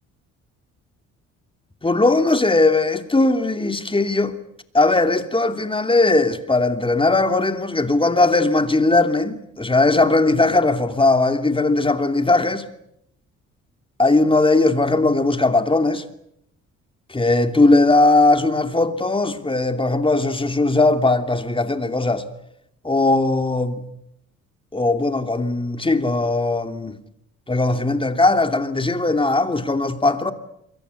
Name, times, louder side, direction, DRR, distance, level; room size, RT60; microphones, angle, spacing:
voice 1, 1.8-4.3 4.7-12.6 14.0-16.0 17.1-22.3 22.8-23.9 24.7-27.0 27.5-30.3, left 2 dB, 15° left, 3.0 m, -19 dB
28.0 x 24.0 x 8.5 m
cardioid pair, 90°, 30 cm